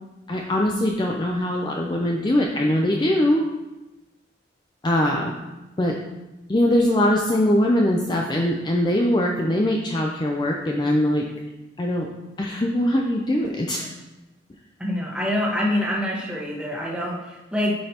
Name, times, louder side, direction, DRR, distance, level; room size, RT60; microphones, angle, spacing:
voice 1, 0.3-3.4 4.8-5.3 5.8-6.0 6.5-11.3 11.8-12.1 12.4-13.9, left 1 dB, 25° left, 0 dB, 0.5 m, -22 dB
voice 2, 14.8-17.7, left 1 dB, 5° right, -3 dB, 1.3 m, -25 dB
9.6 x 5.2 x 2.9 m, 1.0 s
head